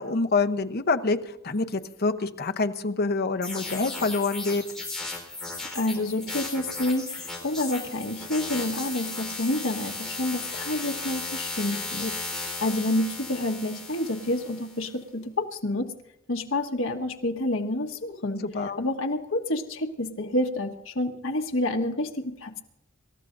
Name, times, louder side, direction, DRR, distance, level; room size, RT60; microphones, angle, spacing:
voice 1, 0.0-4.6 12.0-12.1 18.5-18.8, left 3 dB, 50° left, 8 dB, 0.9 m, -26 dB
sound 1, 3.4-14.8, left 3 dB, 5° left, 4.2 m, -35 dB
voice 2, 5.7-15.9 16.3-18.4 18.8-22.6, left 1 dB, 70° left, 3 dB, 1.5 m, -29 dB
27.0 x 14.0 x 2.6 m, 0.85 s
head